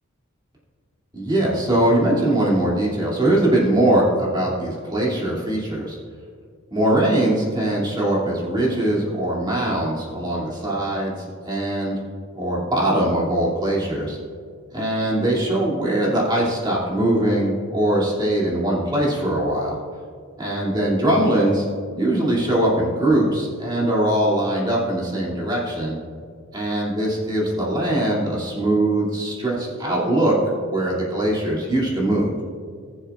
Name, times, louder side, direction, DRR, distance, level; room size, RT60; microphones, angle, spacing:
voice 1, 1.1-6.0 6.7-11.2 11.4-12.0 12.3-14.2 14.7-19.8 20.4-21.7 21.9-26.0 26.5-30.4 30.7-32.4, right 1 dB, 20° right, -5 dB, 2.5 m, -21 dB
20.0 x 7.3 x 2.4 m, 2.1 s
head